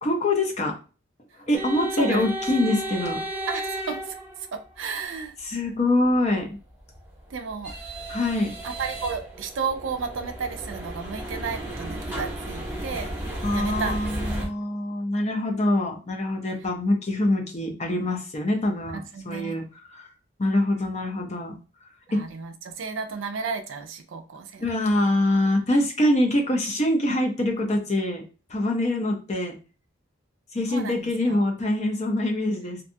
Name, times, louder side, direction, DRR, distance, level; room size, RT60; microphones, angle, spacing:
voice 1, 0.0-0.7 1.4-3.2 5.4-6.6 8.1-8.5 13.4-20.1 20.4-21.6 22.1-22.2 24.6-28.2 28.5-29.5 30.5-32.8, left 1 dB, 35° left, 2 dB, 0.5 m, -24 dB
sound 1, 1.5-4.7 6.8-14.5, right 1 dB, 10° right, 0.7 m, -33 dB
voice 2, 1.9-2.3 3.5-4.1 4.5-5.3 7.3-7.7 8.6-13.1 13.5-14.5 19.1-19.5 22.1-24.6 30.7-31.5, right 5 dB, 70° right, 6 dB, 0.4 m, -33 dB
2.6 x 2.3 x 2.6 m, 0.34 s
head